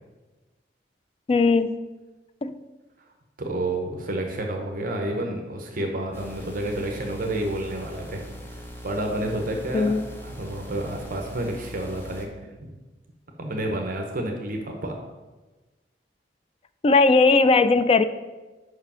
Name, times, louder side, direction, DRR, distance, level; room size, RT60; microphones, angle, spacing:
voice 1, 1.3-1.8 2.4-2.5 9.7-10.0 16.8-18.0, left 3 dB, 30° left, 12 dB, 0.3 m, -18 dB
voice 2, 3.4-8.2 8.8-9.9 10.2-12.3 12.6-12.7 13.4-15.0, right 1 dB, 50° right, 2 dB, 0.8 m, -29 dB
sound 1, 6.1-12.3, equal, 15° left, 0.7 m, -41 dB
5.5 x 4.9 x 5.6 m, 1.2 s
head